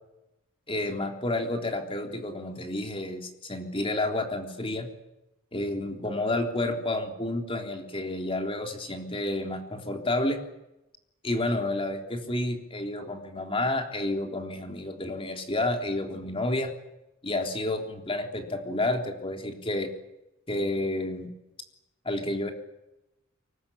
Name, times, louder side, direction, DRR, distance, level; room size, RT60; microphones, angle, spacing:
voice 1, 0.7-4.9 5.5-10.4 11.2-16.7 17.2-19.9 20.5-21.3 22.0-22.5, left 2 dB, 25° left, 3 dB, 3.6 m, -30 dB
24.0 x 20.0 x 10.0 m, 0.90 s
head